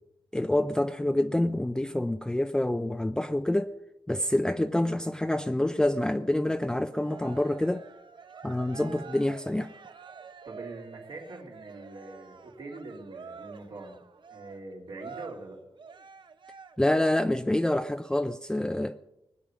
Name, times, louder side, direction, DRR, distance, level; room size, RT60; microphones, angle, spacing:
voice 1, 0.3-3.7 4.1-7.9 8.4-9.7 16.8-19.0, left 1 dB, 10° left, 0.4 m, -27 dB
Cheering, 6.9-17.0, right 5 dB, 55° right, 0.9 m, -47 dB
voice 2, 10.4-14.0 14.3-15.6, right 2 dB, 75° right, 3.3 m, -43 dB
20.5 x 8.6 x 6.2 m
wide cardioid pair, 110°, 9 cm